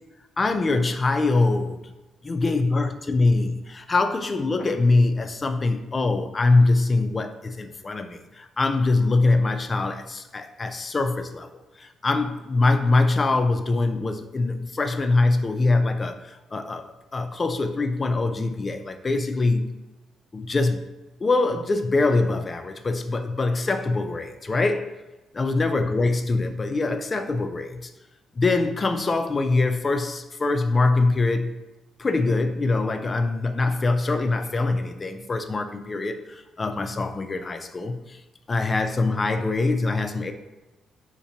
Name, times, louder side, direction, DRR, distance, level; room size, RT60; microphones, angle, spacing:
voice 1, 0.4-1.8 2.2-11.5 11.8-19.8 20.3-20.8 21.2-24.9 25.3-27.9 28.4-31.6 32.0-38.2 38.5-40.3, left 3 dB, 30° left, 7 dB, 0.3 m, -23 dB
2.7 x 2.5 x 3.9 m, 1.1 s
cardioid pair, 90°, 0 cm